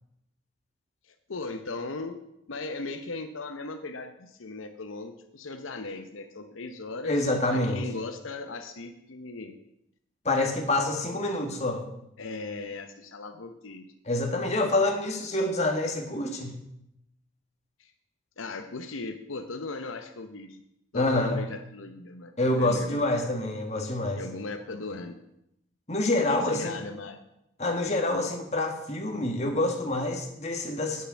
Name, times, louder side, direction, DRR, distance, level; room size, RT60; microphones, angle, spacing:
voice 1, 1.0-2.2 2.5-7.2 7.5-9.6 12.2-13.9 14.2-14.3 17.8-17.9 18.4-20.6 20.9-23.0 24.2-25.1 26.3-27.2, left 3 dB, 80° left, 7 dB, 0.8 m, -38 dB
voice 2, 7.0-7.8 10.2-11.8 14.0-16.6 20.9-21.4 22.4-24.2 25.9-26.8 27.6-31.0, left 2 dB, 35° left, 3 dB, 1.7 m, -27 dB
8.7 x 6.8 x 8.6 m, 0.82 s
head